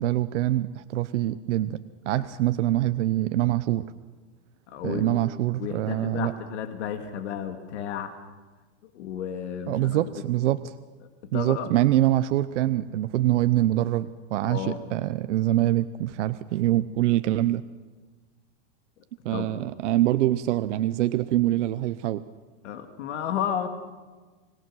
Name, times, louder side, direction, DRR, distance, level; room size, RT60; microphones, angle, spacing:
voice 1, 0.0-1.8 2.1-3.8 4.8-6.3 9.7-10.7 11.3-17.6 19.2-22.2, right 14 dB, 85° right, 12 dB, 0.8 m, -24 dB
voice 2, 4.7-5.2 5.6-8.1 8.9-10.0 11.2-11.7 14.4-14.8 19.3-19.5 22.6-23.7, left 9 dB, 75° left, 7 dB, 2.2 m, -32 dB
25.5 x 19.5 x 6.3 m, 1.3 s
supercardioid pair, 170°, 35 cm